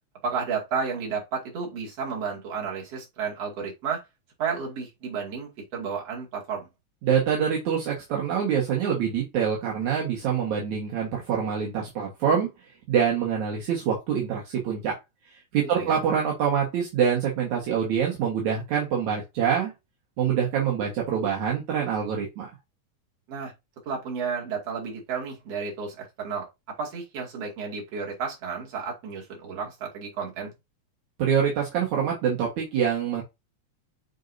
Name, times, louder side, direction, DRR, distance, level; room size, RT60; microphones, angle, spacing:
voice 1, 0.2-4.0 4.4-6.7 15.7-16.0 23.3-23.5 23.9-26.5 26.8-30.5, right 5 dB, 55° right, 3.4 m, -32 dB
voice 2, 7.0-12.5 12.9-14.9 15.5-19.7 20.2-22.5 31.2-33.2, right 7 dB, 70° right, 2.9 m, -25 dB
7.3 x 5.3 x 2.7 m
omnidirectional pair, 3.4 m